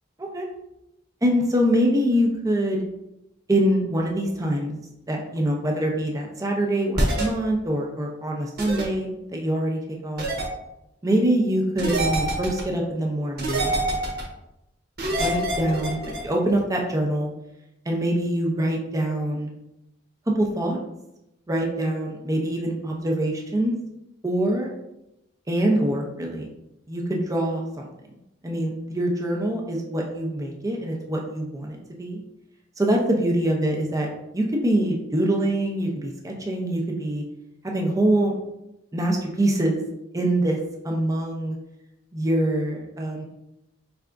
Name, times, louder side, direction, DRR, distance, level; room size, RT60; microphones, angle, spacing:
voice 1, 1.2-2.8 3.5-4.7 5.1-10.3 11.0-13.7 15.1-17.3 17.9-19.5 20.4-20.8 21.5-23.8 24.2-24.7 25.5-26.5 26.9-27.9 28.4-32.2 32.8-34.1 34.3-37.2 37.6-38.4 38.9-39.8 40.1-40.6 40.8-41.6 42.1-43.2, right 1 dB, 20° right, 0 dB, 0.6 m, -24 dB
sound 1, 6.9-7.2 8.6-8.8 10.2-10.5 11.8-12.6 13.4-14.2 15.0-16.2, right 1 dB, 55° right, 1.0 m, -25 dB
4.5 x 3.4 x 2.5 m, 0.88 s
head